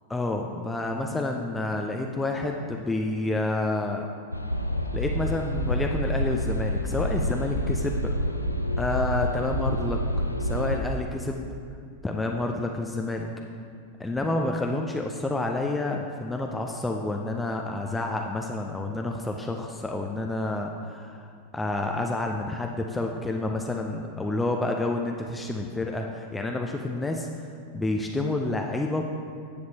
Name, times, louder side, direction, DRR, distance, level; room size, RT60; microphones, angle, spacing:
voice 1, 0.1-4.1 4.9-8.3 8.8-10.0 10.4-11.5 12.0-13.3 14.0-27.3 27.7-29.1, left 2 dB, 10° left, 2 dB, 0.5 m, -29 dB
sound 1, 4.3-10.8, equal, 90° left, 0.4 m, -28 dB
10.0 x 7.7 x 2.8 m, 2.2 s
figure-of-eight pair, 90°, 0 cm